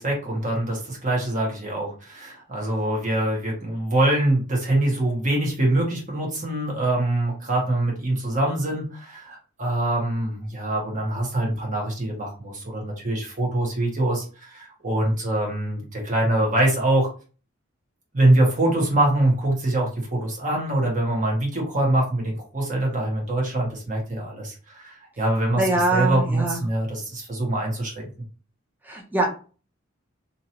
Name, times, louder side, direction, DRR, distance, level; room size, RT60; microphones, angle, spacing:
voice 1, 0.0-17.1 18.1-28.0, right 1 dB, 40° right, -2 dB, 1.4 m, -24 dB
voice 2, 25.6-26.6 28.8-29.3, right 2 dB, 10° right, -1 dB, 0.7 m, -23 dB
2.9 x 2.8 x 2.8 m, 0.36 s
head